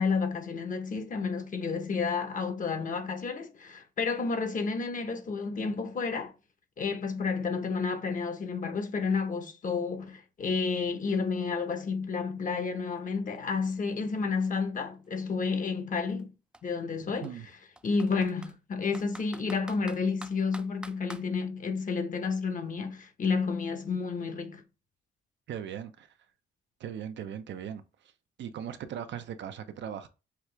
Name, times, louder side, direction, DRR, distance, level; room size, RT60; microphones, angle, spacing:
voice 1, 0.0-6.3 6.8-16.3 16.6-17.4 17.8-24.6, left 5 dB, 40° left, 1.0 m, -31 dB
Computer keyboard, 13.0-13.1 13.4-15.3 16.1-16.2 16.5-16.6 17.2-18.6 18.9-21.3, right 1 dB, 5° right, 0.4 m, -47 dB
voice 2, 25.5-26.1 26.8-27.8 28.4-30.1, right 9 dB, 65° right, 0.6 m, -38 dB
5.9 x 2.4 x 3.3 m
cardioid pair, 90°, 20 cm